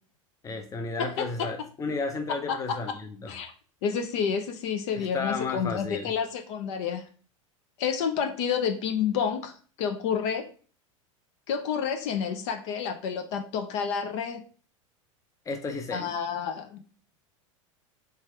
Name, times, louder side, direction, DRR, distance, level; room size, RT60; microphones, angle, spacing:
voice 1, 0.4-3.3 5.0-6.1 15.5-16.1, left 4 dB, 20° left, 0.7 m, -33 dB
voice 2, 1.0-1.5 2.5-2.8 3.3-3.5 3.8-7.0 7.8-9.5 9.8-10.5 11.5-14.4 15.9-16.8, left 7 dB, 55° left, 0.7 m, -29 dB
3.4 x 3.3 x 4.3 m
figure-of-eight pair, 90°, 18 cm